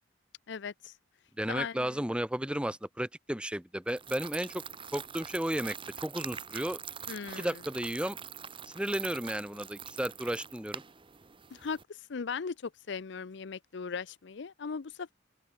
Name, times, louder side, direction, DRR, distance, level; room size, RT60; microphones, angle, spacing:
voice 1, 0.5-0.9 1.5-2.0 7.1-7.6 11.5-15.1, left 5 dB, 70° left, 0.6 m, -38 dB
voice 2, 1.4-4.6 4.9-5.8 6.0-6.8 7.4-8.2 8.7-10.8, right 1 dB, 5° right, 1.3 m, -33 dB
sound 1, 3.9-11.8, right 7 dB, 30° right, 1.0 m, -44 dB
open air
head